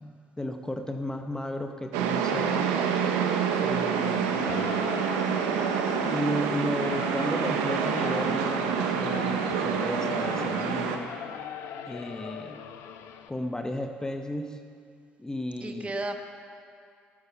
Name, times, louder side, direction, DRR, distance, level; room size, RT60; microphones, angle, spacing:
voice 1, 0.0-2.8 3.6-4.5 6.1-11.1 11.9-12.7 13.3-14.6 15.2-16.0, left 1 dB, 15° left, 6 dB, 0.8 m, -34 dB
Seamless City Loop, 1.9-11.0, right 6 dB, 85° right, 0.9 m, -27 dB
Singing / Musical instrument, 4.4-13.3, left 8 dB, 70° left, 0.7 m, -41 dB
voice 2, 15.6-16.2, right 2 dB, 25° right, 5 dB, 1.2 m, -35 dB
13.5 x 6.8 x 7.0 m, 2.3 s
supercardioid pair, 65°, 5 cm